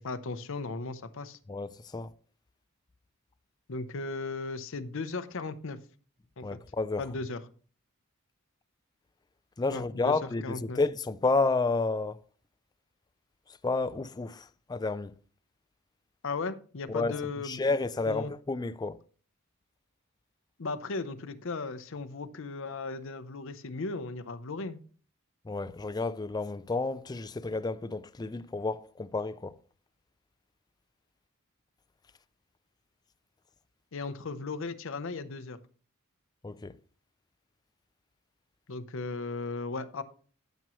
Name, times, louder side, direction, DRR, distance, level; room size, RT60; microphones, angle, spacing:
voice 1, 0.0-1.4 3.7-5.8 6.4-6.6 7.0-7.4 9.7-10.8 16.2-17.7 18.1-18.3 20.6-24.8 33.9-35.6 38.7-40.0, left 3 dB, 60° left, 0.7 m, -36 dB
voice 2, 1.5-2.1 6.4-7.0 9.6-12.2 13.6-15.1 16.9-19.0 25.5-29.6 36.4-36.8, left 3 dB, 20° left, 0.3 m, -31 dB
14.5 x 6.2 x 3.1 m
head